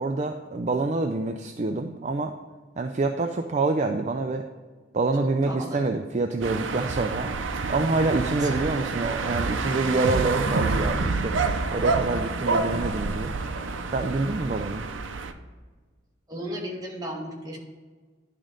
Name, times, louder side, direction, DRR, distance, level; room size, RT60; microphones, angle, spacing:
voice 1, 0.0-2.4 2.8-4.4 4.9-7.3 7.7-11.4 11.7-13.3 13.9-14.8, right 3 dB, 35° right, 5 dB, 0.4 m, -26 dB
voice 2, 5.2-5.9 8.4-8.6 16.3-17.6, right 1 dB, 20° right, -2 dB, 1.5 m, -35 dB
sound 1, 6.4-15.3, right 3 dB, 75° right, 0.6 m, -28 dB
11.0 x 3.8 x 5.1 m, 1.4 s
head